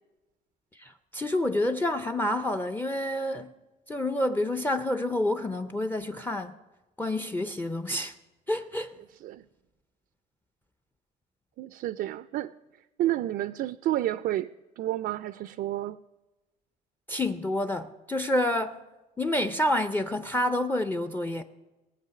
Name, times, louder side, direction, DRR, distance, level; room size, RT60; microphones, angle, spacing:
voice 1, 0.7-3.5 3.9-6.6 7.0-8.1 8.5-9.0 17.1-18.8 19.2-21.4, left 1 dB, 10° left, 0.5 m, -28 dB
voice 2, 11.6-16.0, right 14 dB, 65° right, 0.4 m, -31 dB
20.0 x 7.8 x 5.7 m
cardioid pair, 110°, 17 cm